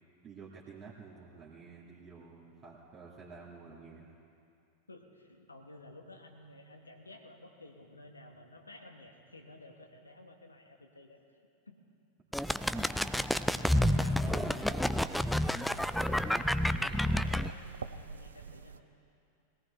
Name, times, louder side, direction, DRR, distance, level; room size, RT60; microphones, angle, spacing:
voice 1, 0.2-4.1 14.2-14.7, right 4 dB, 30° right, -5 dB, 2.1 m, -49 dB
voice 2, 4.9-11.2 11.7-11.8 13.7-15.2 16.0-18.9, left 2 dB, 80° left, 3 dB, 1.5 m, -53 dB
sound 1, 12.3-17.5, left 1 dB, ahead, 0.4 m, -29 dB
sound 2, 13.7-18.8, right 5 dB, 70° right, 0.5 m, -48 dB
21.5 x 18.0 x 3.3 m, 2.5 s
figure-of-eight pair, 90°, 0 cm